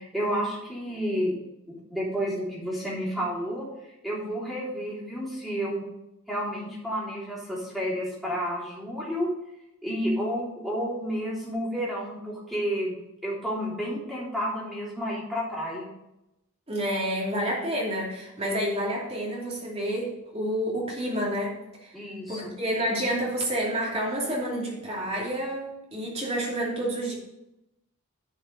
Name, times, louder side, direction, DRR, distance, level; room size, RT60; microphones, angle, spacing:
voice 1, 0.0-1.3 1.7-3.7 4.0-5.8 6.3-9.3 9.8-13.0 13.2-15.9 21.9-22.5, equal, ahead, -8 dB, 3.6 m, -30 dB
voice 2, 16.7-22.0 22.3-27.2, equal, 30° right, -4 dB, 2.8 m, -29 dB
10.5 x 5.5 x 5.4 m, 0.87 s
head